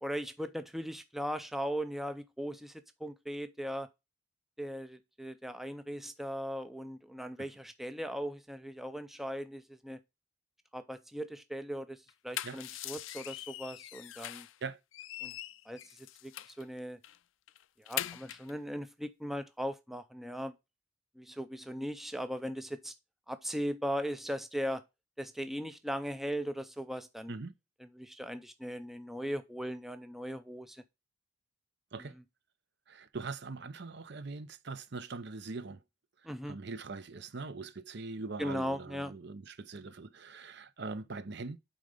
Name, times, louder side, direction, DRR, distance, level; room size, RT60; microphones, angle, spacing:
voice 1, 0.0-3.9 4.6-10.0 10.7-14.5 15.2-15.3 15.7-17.0 17.8-20.5 21.2-22.9 23.3-24.8 25.2-27.4 27.8-30.8 32.0-32.1 36.2-36.6 38.4-39.1, equal, ahead, 0.4 m, -38 dB
sound 1, 12.1-14.6 14.9-16.6 17.0-17.2 17.5-18.5, left 13 dB, 70° left, 0.4 m, -42 dB
voice 2, 32.9-35.8 36.5-41.6, right 3 dB, 55° right, 0.7 m, -42 dB
9.0 x 3.9 x 5.0 m
head